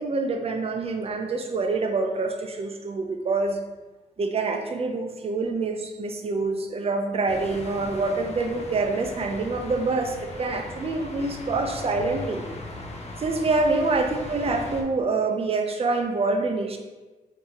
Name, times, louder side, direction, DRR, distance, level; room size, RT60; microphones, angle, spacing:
voice 1, 0.0-3.6 4.2-12.4 13.2-16.8, right 3 dB, 35° right, 4 dB, 0.4 m, -26 dB
sound 1, 7.3-14.8, left 2 dB, 40° left, 0.5 m, -39 dB
3.8 x 2.7 x 2.9 m, 1.2 s
cardioid pair, 90°, 16 cm